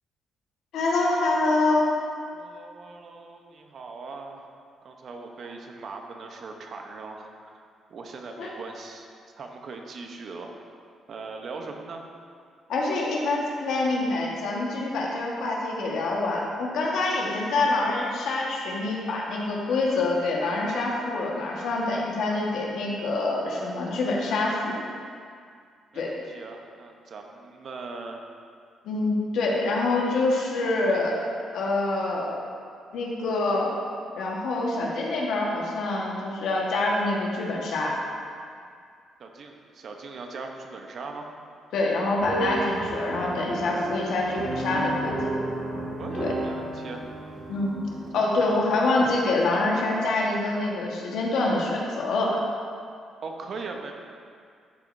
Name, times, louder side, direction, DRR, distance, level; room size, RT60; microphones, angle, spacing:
voice 1, 0.7-1.9 8.4-8.5 12.7-24.8 25.9-26.1 28.8-31.3 31.5-32.3 32.9-33.7 34.2-37.9 41.7-45.2 46.2-46.3 47.5-47.8 48.1-52.4, left 2 dB, 80° left, -3 dB, 1.4 m, -26 dB
voice 2, 2.3-4.5 4.8-7.6 7.9-9.1 9.4-10.5 11.1-12.0 25.9-28.2 39.2-41.3 46.0-47.0 48.1-48.8 53.2-53.9, right 4 dB, 55° right, 3 dB, 0.8 m, -39 dB
sound 1, 42.2-48.1, right 1 dB, 20° right, 1.8 m, -32 dB
12.5 x 5.0 x 2.6 m, 2.2 s
cardioid pair, 90°, 0 cm